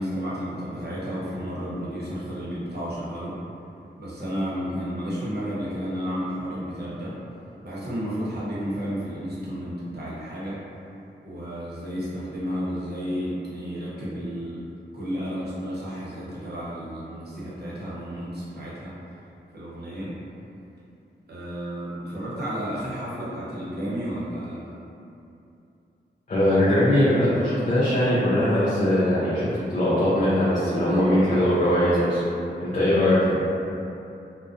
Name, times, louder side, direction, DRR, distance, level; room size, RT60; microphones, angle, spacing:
voice 1, 0.0-3.4 4.0-7.2 7.6-10.6 11.2-14.6 14.9-18.9 19.5-20.1 21.3-24.6, equal, 55° right, -8 dB, 0.8 m, -32 dB
voice 2, 26.3-32.2 32.6-33.4, left 1 dB, 40° left, -9 dB, 0.5 m, -21 dB
2.4 x 2.1 x 2.5 m, 2.7 s
cardioid pair, 45°, 19 cm